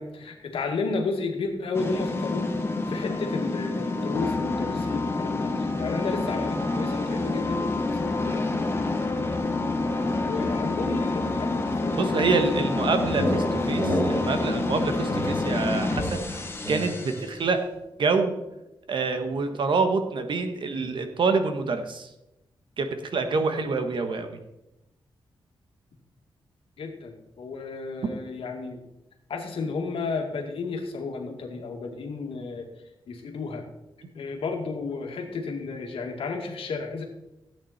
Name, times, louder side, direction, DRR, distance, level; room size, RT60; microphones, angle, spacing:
voice 1, 0.0-8.4 10.2-14.0 23.7-23.9 26.8-28.8 29.3-32.7 33.1-33.7 34.1-37.1, left 4 dB, 85° left, 3 dB, 2.0 m, -33 dB
sound 1, 1.7-17.4, left 2 dB, 25° left, 1.3 m, -28 dB
voice 2, 12.0-16.2 16.7-17.6 18.0-18.3 18.9-22.1 22.8-24.3, right 4 dB, 60° right, 7 dB, 1.4 m, -26 dB
sound 2, 12.5-17.2, equal, 20° right, 3.4 m, -31 dB
14.0 x 8.8 x 4.3 m, 0.94 s
wide cardioid pair, 135°, 9 cm